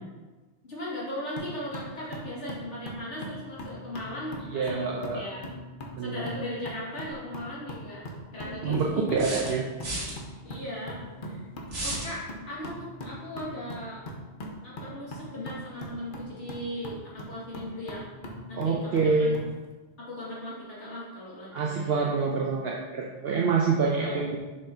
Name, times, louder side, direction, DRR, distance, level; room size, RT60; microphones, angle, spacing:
voice 1, 0.6-5.5 6.0-8.0 8.3-9.2 10.4-11.0 11.3-11.4 11.8-14.0 14.6-18.1 18.5-19.4 20.0-22.1 23.8-24.2, left 1 dB, 80° left, -7 dB, 2.4 m, -38 dB
sound 1, 1.4-19.5, equal, 50° left, 1.0 m, -41 dB
voice 2, 4.4-5.2 6.0-6.3 8.6-8.9 9.2-9.6 18.5-19.4 21.5-24.4, right 4 dB, 65° right, -2 dB, 0.8 m, -26 dB
sound 2, 9.2-10.1 11.7-12.1, right 1 dB, 85° right, 1.8 m, -33 dB
6.9 x 5.4 x 2.7 m, 1.2 s
omnidirectional pair, 1.2 m